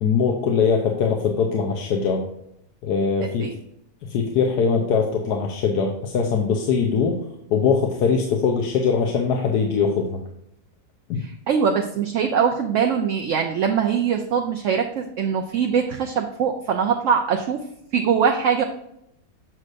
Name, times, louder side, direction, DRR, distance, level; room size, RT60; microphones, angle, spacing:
voice 1, 0.0-2.2 2.8-3.5 4.0-7.2 7.5-10.2 11.1-11.2, left 5 dB, 80° left, 2 dB, 1.4 m, -21 dB
voice 2, 11.2-17.6 17.9-18.6, right 7 dB, 65° right, 2 dB, 0.8 m, -22 dB
7.6 x 6.3 x 2.5 m, 0.81 s
omnidirectional pair, 1.7 m